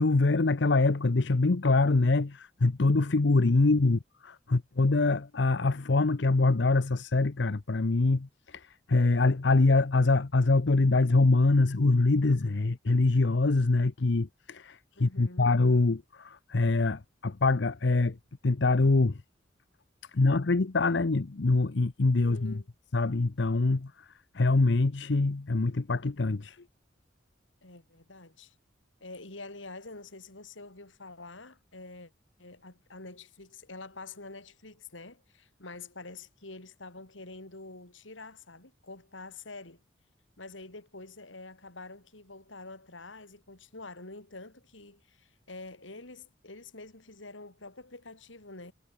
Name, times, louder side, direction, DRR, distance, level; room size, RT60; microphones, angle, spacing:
voice 1, 0.0-18.2 18.4-19.2 20.1-22.6 22.9-24.1 24.3-26.6, left 3 dB, 65° left, 0.8 m, -24 dB
voice 2, 3.6-4.0 15.0-15.5 22.3-22.7 27.6-28.5 29.0-32.1 32.4-39.8 40.4-48.7, left 3 dB, 80° left, 4.5 m, -47 dB
head